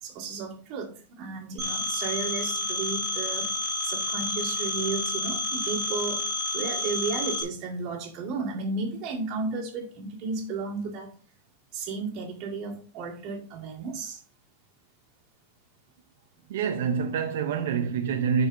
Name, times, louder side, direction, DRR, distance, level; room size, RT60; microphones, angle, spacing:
voice 1, 0.0-3.6 3.8-6.2 6.5-11.1 11.7-14.2, right 4 dB, 35° right, 2.1 m, -33 dB
Telephone, 1.6-7.4, left 2 dB, 15° right, 2.4 m, -30 dB
voice 2, 16.5-18.5, right 6 dB, 75° right, 0.7 m, -26 dB
12.0 x 4.9 x 2.6 m
supercardioid pair, 170°, 0 cm